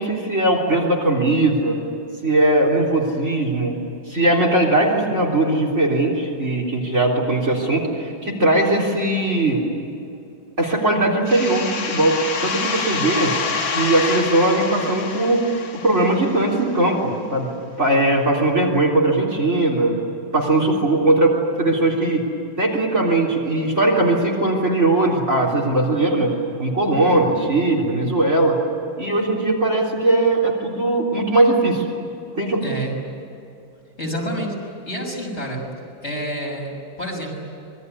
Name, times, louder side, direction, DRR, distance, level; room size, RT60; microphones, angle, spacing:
voice 1, 0.0-1.8 2.2-3.7 4.1-9.6 10.6-13.3 13.7-15.5 15.8-17.5 17.8-19.9 20.3-22.3 22.6-26.3 26.6-28.6 29.0-31.9 32.3-32.6, right 2 dB, 35° right, 0 dB, 4.0 m, -19 dB
sound 1, 11.3-16.8, left 5 dB, 75° left, 3.0 m, -27 dB
voice 2, 32.6-32.9 34.0-34.6 34.8-35.6 36.0-37.4, equal, 30° left, -1 dB, 6.7 m, -28 dB
26.5 x 22.5 x 9.8 m, 2.7 s
omnidirectional pair, 2.1 m